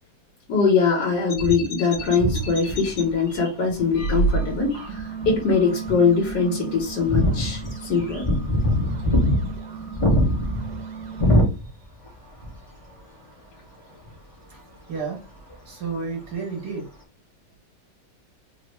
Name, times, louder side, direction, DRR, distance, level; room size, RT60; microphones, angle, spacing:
voice 1, 0.5-8.2, left 5 dB, 75° left, -2 dB, 1.6 m, -22 dB
sound 1, 1.3-3.0 3.9-4.9, right 2 dB, 60° left, 1.2 m, -27 dB
sound 2, 2.0-4.1 4.7-5.5 5.9-6.0 6.2-6.3 6.8-12.1 12.4-12.5 14.1-14.2, left 1 dB, 25° left, 0.8 m, -22 dB
sound 3, 4.3-11.4, right 6 dB, 90° right, 1.4 m, -37 dB
voice 2, 14.9-15.2 15.6-16.9, right 5 dB, 60° right, 1 dB, 1.7 m, -31 dB
3.7 x 2.0 x 3.3 m, 0.30 s
omnidirectional pair, 1.9 m